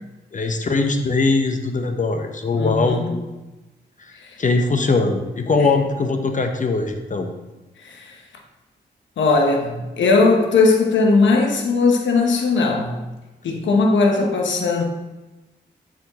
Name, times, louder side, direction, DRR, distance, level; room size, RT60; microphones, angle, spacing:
voice 1, 0.3-3.2 4.4-7.3, left 3 dB, 40° left, 6 dB, 0.8 m, -21 dB
voice 2, 2.5-3.1 4.2-4.3 5.6-5.8 7.8-8.1 9.2-13.0 13.4-14.8, left 3 dB, 75° left, 2 dB, 0.9 m, -18 dB
7.4 x 4.9 x 3.0 m, 1.1 s
supercardioid pair, 50°, 19 cm